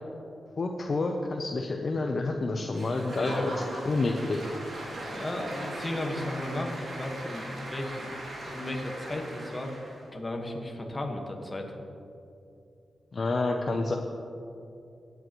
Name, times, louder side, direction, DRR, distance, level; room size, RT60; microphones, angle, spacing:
voice 1, 0.6-3.5 3.9-4.5 13.1-13.9, left 3 dB, 45° left, 2 dB, 0.7 m, -29 dB
Applause / Crowd, 2.7-10.1, right 1 dB, 55° right, 2.8 m, -39 dB
voice 2, 3.2-3.7 5.1-8.1 8.4-9.7 10.1-11.7, left 1 dB, 20° left, 1 dB, 1.5 m, -35 dB
18.5 x 9.2 x 3.1 m, 2.6 s
wide cardioid pair, 115°, 0 cm